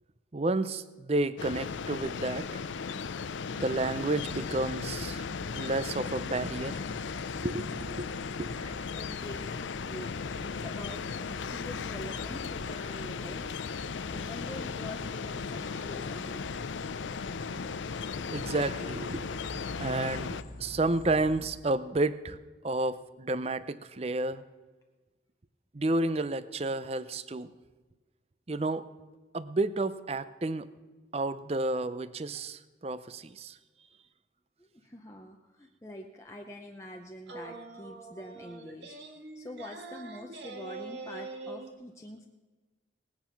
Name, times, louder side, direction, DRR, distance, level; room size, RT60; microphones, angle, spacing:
voice 1, 0.3-2.6 3.5-5.2 5.5-6.8 7.4-8.1 8.4-8.5 18.3-19.4 19.8-22.4 22.6-24.4 25.7-27.5 28.5-28.9 29.3-30.7 31.1-33.6, right 2 dB, 35° right, 14 dB, 0.5 m, -31 dB
sound 1, 1.4-20.4, left 5 dB, 90° left, 0.5 m, -36 dB
sound 2, 4.3-21.5, left 1 dB, 60° left, 1.3 m, -47 dB
voice 2, 8.4-13.6 14.1-16.5 34.6-42.3, left 1 dB, 15° left, 1 dB, 0.7 m, -45 dB
sound 3, 37.3-41.7, right 3 dB, 75° right, 1.8 m, -44 dB
18.5 x 9.3 x 5.9 m, 1.3 s
head